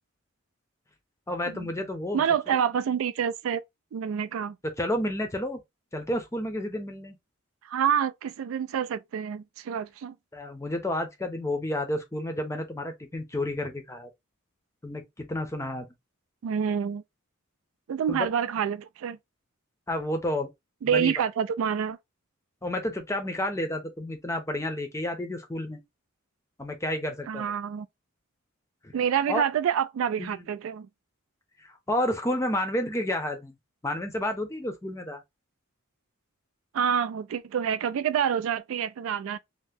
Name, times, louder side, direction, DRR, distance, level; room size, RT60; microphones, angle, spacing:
voice 1, 1.3-2.6 4.8-5.6 5.9-7.2 10.3-14.1 14.8-15.9 18.1-18.3 19.9-20.5 20.9-21.1 22.6-25.8 26.6-27.4 28.8-28.9 29.3-29.4 30.2-30.4 31.6-33.5 33.8-35.2, left 1 dB, 15° left, 0.5 m, -30 dB
voice 2, 2.1-3.6 3.9-4.6 7.6-10.1 16.4-17.0 17.9-19.2 20.8-22.0 27.3-27.9 28.9-30.9 36.7-39.4, right 8 dB, 70° right, 0.3 m, -27 dB
2.8 x 2.1 x 3.4 m
head